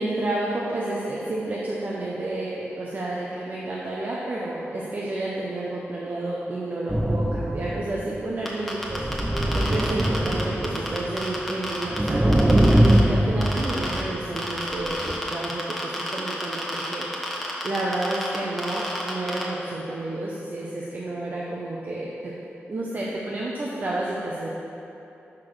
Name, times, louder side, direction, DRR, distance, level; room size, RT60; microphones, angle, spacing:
voice 1, 0.0-22.3 22.7-24.5, right 2 dB, 45° right, -5 dB, 0.8 m, -30 dB
sound 1, 6.9-8.2 8.9-11.3 11.7-14.5 14.9-15.1, right 1 dB, 15° right, 0.5 m, -22 dB
sound 2, 8.5-13.0 13.4-14.0 14.4-19.4, equal, 5° left, 1.1 m, -30 dB
6.0 x 4.8 x 6.0 m, 3.0 s
wide cardioid pair, 95°, 4 cm